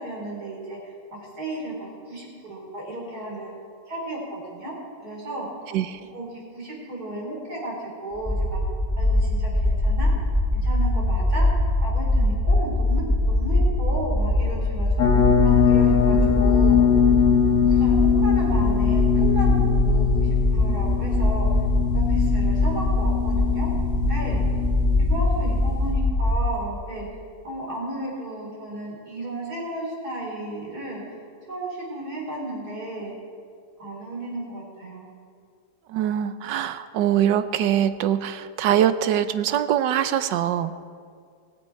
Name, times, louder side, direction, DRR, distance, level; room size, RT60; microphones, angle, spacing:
voice 1, 0.0-3.5 3.9-4.7 5.0-5.5 6.1-6.3 6.5-8.6 9.0-10.1 10.6-11.5 11.8-14.9 15.4-16.8 17.6-21.6 21.9-23.7 24.0-24.4 25.0-27.1 27.4-31.0 31.5-33.2 33.8-35.1, right 1 dB, 60° right, -3 dB, 4.1 m, -34 dB
voice 2, 5.7-6.0 35.9-40.7, right 10 dB, 90° right, 12 dB, 1.3 m, -23 dB
sound 1, 8.1-26.4, left 1 dB, 10° right, 2.8 m, -22 dB
sound 2, 15.0-25.9, left 8 dB, 75° left, 1.5 m, -22 dB
16.5 x 15.0 x 4.5 m, 2.2 s
omnidirectional pair, 1.9 m